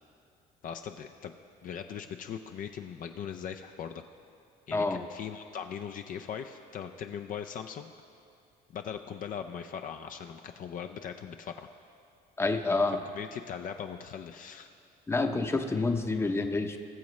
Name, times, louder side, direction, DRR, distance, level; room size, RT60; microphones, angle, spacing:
voice 1, 0.6-1.3 1.6-4.0 4.7-7.9 8.7-11.7 13.1-14.7, left 8 dB, 55° left, 6 dB, 0.5 m, -40 dB
voice 2, 12.4-13.0 15.1-16.8, left 3 dB, 15° left, 5 dB, 0.7 m, -28 dB
20.5 x 7.2 x 3.2 m, 2.5 s
cardioid pair, 110°, 17 cm